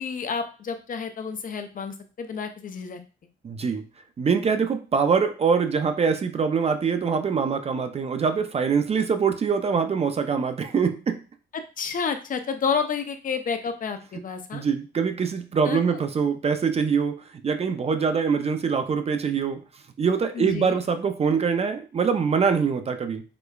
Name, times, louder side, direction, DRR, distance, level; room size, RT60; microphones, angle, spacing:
voice 1, 0.0-3.0 11.5-14.6 15.6-16.0 20.3-20.8, left 6 dB, 45° left, 7 dB, 0.5 m, -30 dB
voice 2, 3.4-3.8 4.2-11.2 14.2-14.3 14.5-19.6 20.0-23.2, right 6 dB, 30° right, 8 dB, 0.4 m, -24 dB
4.9 x 2.1 x 2.3 m, 0.35 s
cardioid pair, 90°, 20 cm